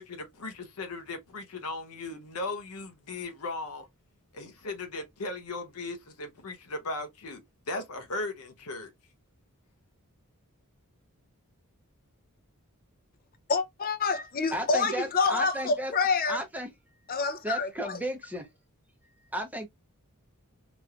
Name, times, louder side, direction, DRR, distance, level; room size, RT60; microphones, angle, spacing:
voice 1, 0.0-3.9 4.3-7.4 7.7-8.9, left 2 dB, 80° left, 0.8 m, -37 dB
voice 2, 13.5-16.4 17.1-18.0, left 4 dB, 40° left, 0.6 m, -27 dB
voice 3, 14.5-15.9 16.3-16.7 17.4-18.5 19.3-19.7, equal, 5° right, 0.8 m, -34 dB
3.1 x 3.0 x 2.4 m
head